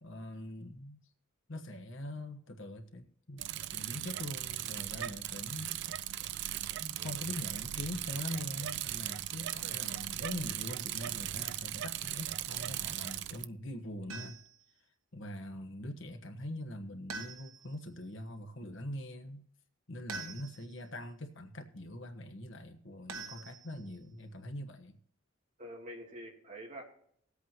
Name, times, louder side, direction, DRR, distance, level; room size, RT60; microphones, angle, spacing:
voice 1, 0.0-1.0 1.5-3.4 3.7-5.8 6.8-14.4 15.1-19.4 19.9-25.0, left 1 dB, 60° left, 5 dB, 1.2 m, -43 dB
Bicycle, 3.4-13.4, right 13 dB, 55° right, 0.3 m, -38 dB
voice 2, 7.0-7.3 9.6-9.8 20.2-20.3 23.3-23.4 25.6-26.8, right 1 dB, 35° right, -1 dB, 2.7 m, -47 dB
sound 1, 14.1-14.6 17.1-17.8 20.1-20.8 23.1-24.0, right 4 dB, 80° right, 1.2 m, -44 dB
20.0 x 8.3 x 2.9 m, 0.65 s
head